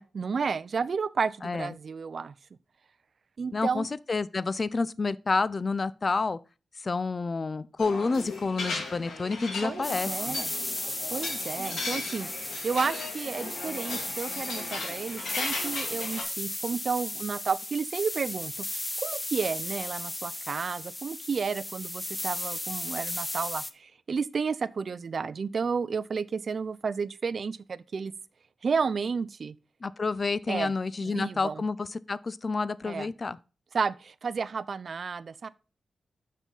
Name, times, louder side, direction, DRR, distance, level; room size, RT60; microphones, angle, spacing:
voice 1, 0.0-2.3 3.4-3.9 9.6-10.5 11.1-18.6 19.0-28.1 28.6-29.5 30.5-30.7 31.0-31.6 32.9-33.1 33.7-35.5, right 5 dB, 60° right, 0.4 m, -32 dB
voice 2, 1.4-1.7 3.5-6.4 6.8-10.4 29.8-33.4, left 4 dB, 40° left, 0.4 m, -29 dB
sound 1, 7.8-16.2, left 3 dB, 85° left, 2.4 m, -37 dB
sound 2, 9.8-23.7, left 1 dB, 20° left, 0.8 m, -35 dB
6.1 x 5.5 x 5.4 m
cardioid pair, 70°, 0 cm